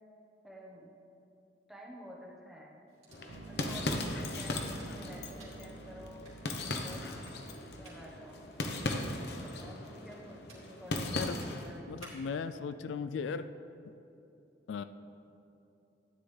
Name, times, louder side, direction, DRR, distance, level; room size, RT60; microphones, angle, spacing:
voice 1, 0.4-0.9 1.7-2.8 3.4-6.2 6.7-7.0 7.7-8.5 9.3-12.0, equal, ahead, -4 dB, 1.2 m, -50 dB
sound 1, 2.9-12.5, right 2 dB, 35° right, 2.6 m, -60 dB
sound 2, 3.1-11.8, left 2 dB, 60° left, 0.8 m, -38 dB
sound 3, 3.3-9.3, right 3 dB, 90° right, 0.5 m, -52 dB
voice 2, 11.9-13.4 14.7-14.8, left 5 dB, 85° left, 12 dB, 0.3 m, -37 dB
13.0 x 9.5 x 3.3 m, 2.8 s
head